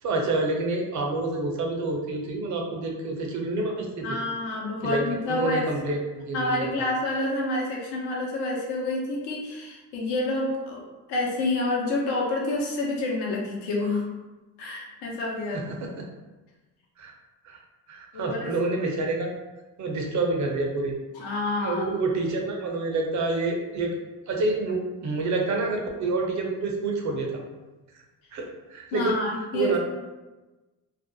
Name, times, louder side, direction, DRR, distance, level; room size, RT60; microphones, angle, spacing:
voice 1, 0.0-4.2 4.8-6.9 15.5-16.1 17.0-17.1 17.4-17.6 17.9-19.3 19.8-21.0 21.6-23.9 24.3-27.4 28.3-29.2 29.5-29.8, right 3 dB, 40° right, 1 dB, 0.7 m, -28 dB
voice 2, 4.0-5.6 6.3-10.8 11.1-14.0 14.6-15.6 18.1-18.5 21.1-22.0 28.9-29.7, left 2 dB, 70° left, -2 dB, 0.9 m, -28 dB
2.5 x 2.1 x 2.6 m, 1.1 s
supercardioid pair, 75°, 43 cm